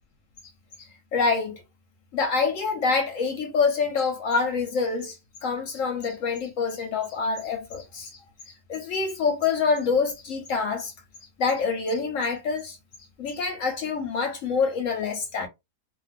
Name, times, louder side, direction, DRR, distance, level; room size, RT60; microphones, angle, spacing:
voice 1, 0.8-1.6 2.1-8.2 8.5-10.9 11.4-12.8 13.2-15.5, left 5 dB, 65° left, 0.9 m, -26 dB
2.5 x 2.4 x 3.3 m
omnidirectional pair, 1.7 m